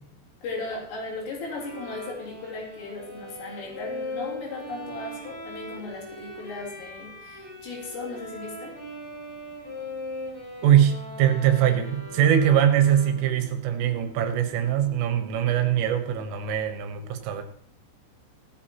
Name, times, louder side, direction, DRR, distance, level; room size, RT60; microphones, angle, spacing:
voice 1, 0.4-8.7, left 3 dB, 75° left, -3 dB, 6.1 m, -36 dB
Bowed string instrument, 1.5-13.4, left 1 dB, 15° left, 3.7 m, -39 dB
voice 2, 10.6-17.4, right 10 dB, 80° right, 7 dB, 3.6 m, -22 dB
sound 1, 11.2-16.3, left 1 dB, 45° right, 6.6 m, -49 dB
16.5 x 12.0 x 3.0 m, 0.63 s
omnidirectional pair, 5.8 m